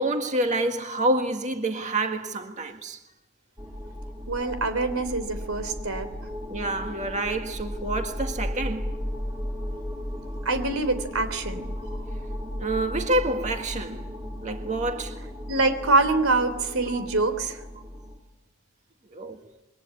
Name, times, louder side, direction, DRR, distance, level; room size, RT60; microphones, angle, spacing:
voice 1, 0.0-3.0 6.5-8.9 12.6-14.1 14.4-15.2 16.9-17.1 19.1-19.4, right 1 dB, 35° right, 1.8 m, -28 dB
sound 1, 3.6-18.2, equal, 15° right, 3.5 m, -35 dB
voice 2, 4.3-6.1 10.4-11.7 15.5-17.6, right 3 dB, 85° right, 3.3 m, -25 dB
27.5 x 22.5 x 8.6 m
head